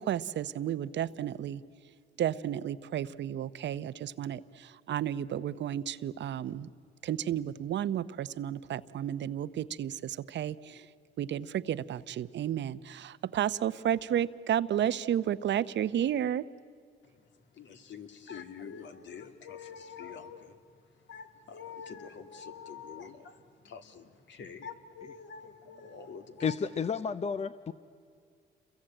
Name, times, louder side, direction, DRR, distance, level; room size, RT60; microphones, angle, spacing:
voice 1, 0.0-1.6 2.2-6.7 7.0-10.9 11.2-16.5, right 10 dB, 65° right, 15 dB, 0.8 m, -32 dB
voice 2, 17.6-20.6 21.1-26.5, left 6 dB, 65° left, 8 dB, 2.2 m, -46 dB
voice 3, 26.4-27.7, left 6 dB, 30° left, 14 dB, 0.7 m, -32 dB
28.5 x 22.5 x 9.0 m, 2.2 s
cardioid pair, 90°, 20 cm